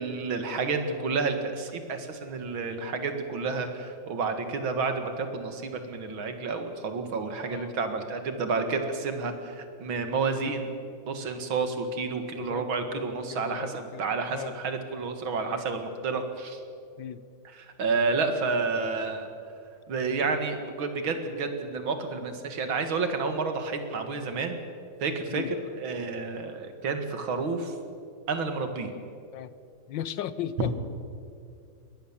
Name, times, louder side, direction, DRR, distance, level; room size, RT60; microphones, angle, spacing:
voice 1, 0.0-10.7 11.1-16.6 17.4-19.3 19.9-24.6 25.0-27.7 28.3-28.9 30.6-30.7, right 4 dB, 80° right, 7 dB, 2.6 m, -30 dB
voice 2, 7.4-7.7 10.3-10.5 12.3-14.5 15.5-15.6 17.0-17.2 25.3-25.5 29.3-29.5 29.9-30.7, left 10 dB, 75° left, 15 dB, 1.4 m, -37 dB
22.0 x 18.5 x 7.3 m, 2.4 s
omnidirectional pair, 2.2 m